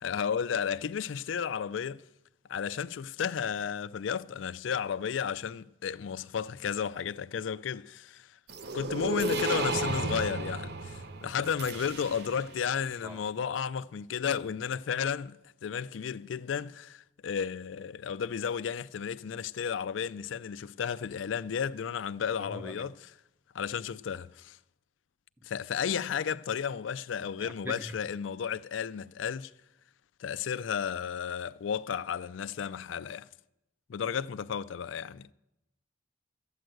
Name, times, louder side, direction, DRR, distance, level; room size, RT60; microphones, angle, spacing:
voice 1, 0.0-2.0 2.5-8.4 8.7-22.9 23.5-24.6 25.4-29.5 30.2-33.3 33.9-35.3, left 7 dB, 85° left, 0.4 m, -33 dB
sound 1, 8.5-12.5, right 2 dB, 55° right, 0.7 m, -33 dB
voice 2, 22.4-22.9 27.4-28.0, right 1 dB, 10° right, 0.6 m, -42 dB
13.0 x 9.1 x 7.7 m
head